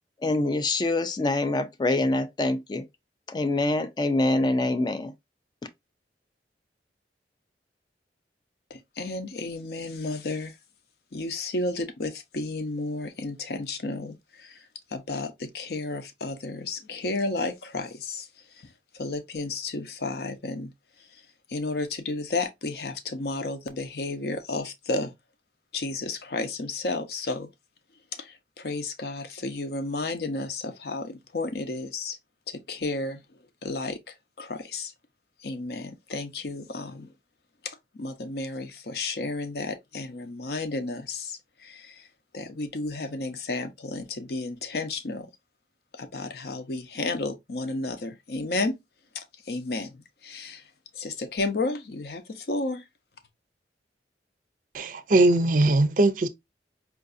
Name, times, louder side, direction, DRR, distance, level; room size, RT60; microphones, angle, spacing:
voice 1, 0.2-2.9 3.3-5.1 5.6-5.7, left 2 dB, 25° left, 0.3 m, -25 dB
voice 2, 8.7-10.6 11.1-25.1 25.7-27.5 28.1-32.2 32.5-34.9 35.4-37.1 37.6-42.1 42.3-45.3 45.9-48.8 49.1-52.8, left 2 dB, 65° left, 0.6 m, -32 dB
voice 3, 54.7-56.3, right 2 dB, 50° right, 0.4 m, -20 dB
4.7 x 2.5 x 2.5 m
head